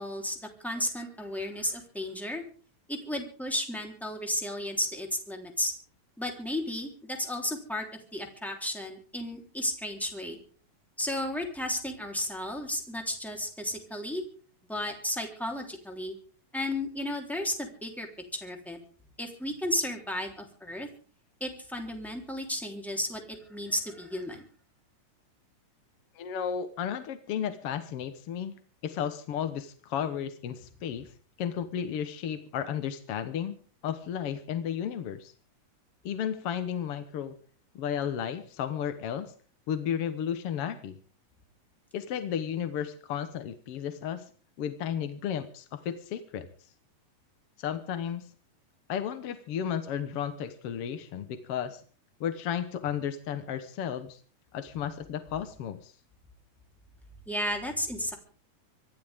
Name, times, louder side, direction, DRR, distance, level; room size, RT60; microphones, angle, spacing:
voice 1, 0.0-2.4 2.9-5.7 6.2-7.8 8.1-10.4 11.0-14.2 14.7-16.2 16.5-18.1 18.3-18.8 19.2-20.9 21.4-24.4 57.3-58.1, left 1 dB, ahead, 3 dB, 3.2 m, -33 dB
voice 2, 26.1-28.6 28.8-31.1 31.4-33.6 33.8-35.3 36.0-37.3 37.7-39.3 39.7-41.0 41.9-44.3 44.6-46.5 47.6-48.3 48.9-51.8 52.2-54.2 54.5-55.9, left 8 dB, 60° left, 10 dB, 1.7 m, -33 dB
25.5 x 13.0 x 3.6 m, 0.41 s
omnidirectional pair, 3.9 m